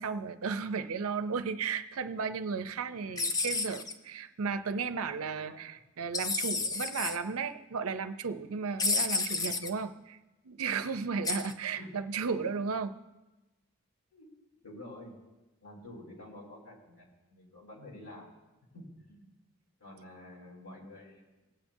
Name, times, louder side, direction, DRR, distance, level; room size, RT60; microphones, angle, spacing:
voice 1, 0.0-10.2 10.4-13.0, right 5 dB, 80° right, 11 dB, 0.6 m, -34 dB
sound 1, 3.2-3.9 6.1-7.2 8.8-9.7 11.2-11.5, left 3 dB, 15° left, 0.4 m, -31 dB
voice 2, 5.3-5.6 11.7-12.0 14.1-14.3 14.6-15.1 15.6-18.3 18.7-19.3 19.8-21.3, left 1 dB, 80° left, -5 dB, 3.8 m, -49 dB
20.0 x 8.5 x 2.7 m, 1.1 s
head